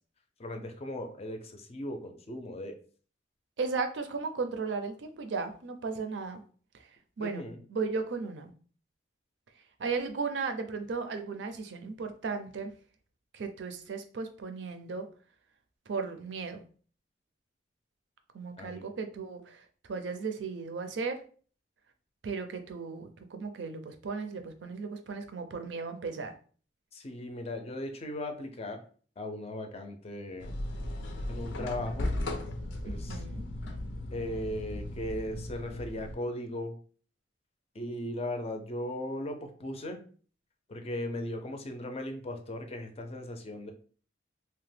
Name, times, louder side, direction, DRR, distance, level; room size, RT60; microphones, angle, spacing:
voice 1, 0.4-2.8 7.2-7.6 18.6-18.9 26.9-28.8 29.2-30.5 31.3-32.2 32.8-33.2 34.1-36.7 37.8-40.0 40.7-43.7, left 1 dB, 35° left, 6 dB, 0.4 m, -37 dB
voice 2, 3.6-6.4 6.7-6.9 7.2-8.5 9.8-12.7 13.3-15.1 15.9-16.6 18.3-21.2 22.2-26.3 32.8-33.5, right 4 dB, 75° right, 7 dB, 0.5 m, -36 dB
sound 1, 30.4-36.2, left 1 dB, 85° left, 0.5 m, -36 dB
2.8 x 2.1 x 3.2 m, 0.42 s
head